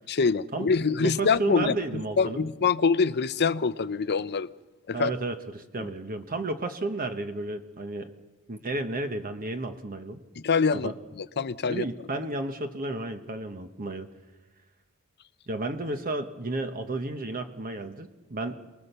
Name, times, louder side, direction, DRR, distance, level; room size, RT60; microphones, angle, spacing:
voice 1, 0.1-4.5 4.9-5.1 5.8-5.9 10.4-11.9, left 5 dB, 50° left, 0.7 m, -25 dB
voice 2, 1.0-2.4 4.9-8.1 8.5-10.2 10.7-10.9 11.7-14.1 15.5-18.6, right 2 dB, 40° right, 1.1 m, -32 dB
29.0 x 19.5 x 6.8 m
head